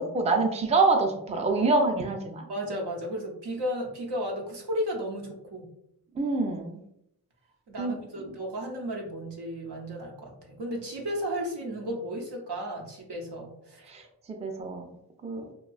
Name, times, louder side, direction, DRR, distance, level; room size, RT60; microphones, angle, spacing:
voice 1, 0.0-2.5 6.1-6.8 7.8-8.0 8.2-8.3 13.9-14.9 15.2-15.4, right 3 dB, 15° right, 2 dB, 0.4 m, -26 dB
voice 2, 2.5-5.7 7.7-14.0, equal, 75° right, 0 dB, 0.7 m, -34 dB
2.6 x 2.3 x 2.3 m, 0.78 s
cardioid pair, 45°, 41 cm